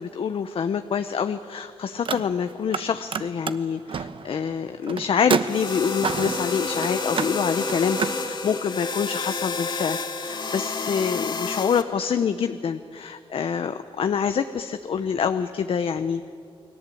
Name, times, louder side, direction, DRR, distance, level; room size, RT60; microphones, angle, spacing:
voice 1, 0.0-16.3, left 7 dB, 70° left, 9 dB, 0.8 m, -26 dB
Car, 1.9-2.8 3.1-8.2, right 6 dB, 60° right, 1.0 m, -29 dB
sound 1, 5.4-11.8, left 4 dB, 50° left, 2.3 m, -29 dB
29.5 x 21.0 x 8.5 m, 2.4 s
wide cardioid pair, 105°, 10 cm